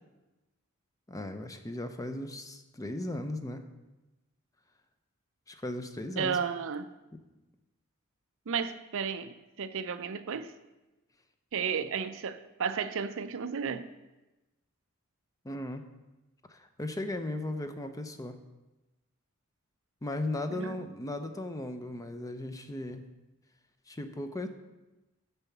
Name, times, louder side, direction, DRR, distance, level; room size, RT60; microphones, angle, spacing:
voice 1, 1.1-3.6 5.5-6.4 15.4-15.8 16.5-18.4 20.0-23.0 23.9-24.5, left 1 dB, 15° left, 0.6 m, -36 dB
voice 2, 6.2-6.9 8.5-10.5 11.5-13.9 20.5-20.8, right 6 dB, 65° right, 0.5 m, -33 dB
6.8 x 5.7 x 7.2 m
head